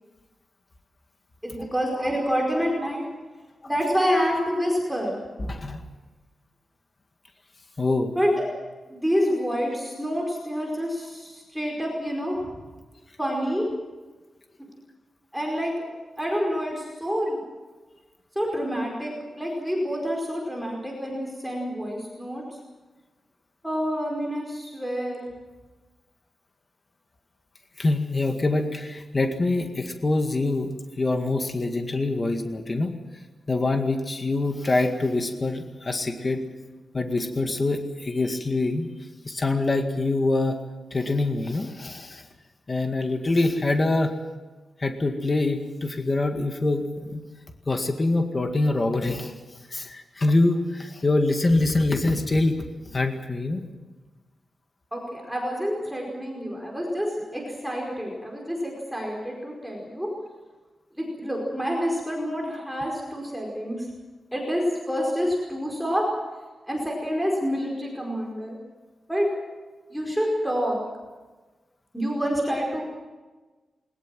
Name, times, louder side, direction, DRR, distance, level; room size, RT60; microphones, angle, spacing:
voice 1, 1.4-3.0 3.6-5.2 8.2-8.5 8.9-12.4 13.2-13.7 15.3-15.7 16.2-17.4 18.3-22.4 23.6-25.3 54.9-57.1 57.3-60.1 61.0-63.9 64.3-66.1 66.7-68.6 69.1-69.3 69.9-70.8 71.9-72.8, equal, ahead, -2 dB, 4.8 m, -27 dB
voice 2, 5.4-5.9 7.8-8.1 27.8-32.9 33.5-36.4 36.9-38.9 39.3-40.6 40.9-42.2 42.7-44.1 44.8-47.2 47.7-49.3 49.7-53.6, left 2 dB, 30° left, 5 dB, 2.0 m, -25 dB
21.5 x 20.5 x 7.7 m, 1.2 s
wide cardioid pair, 165°, 0 cm